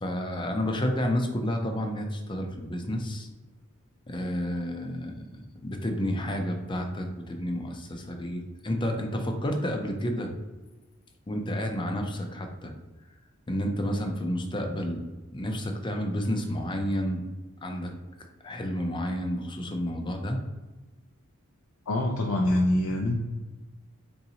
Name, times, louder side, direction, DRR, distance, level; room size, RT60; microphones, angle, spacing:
voice 1, 0.0-3.3 4.1-5.2 5.6-10.3 11.3-12.7 13.5-15.0 15.3-17.2 17.6-17.9 18.4-20.4, equal, 20° left, 3 dB, 0.5 m, -30 dB
voice 2, 21.9-23.1, left 1 dB, 85° left, -1 dB, 0.5 m, -25 dB
4.0 x 3.8 x 2.8 m, 1.2 s
head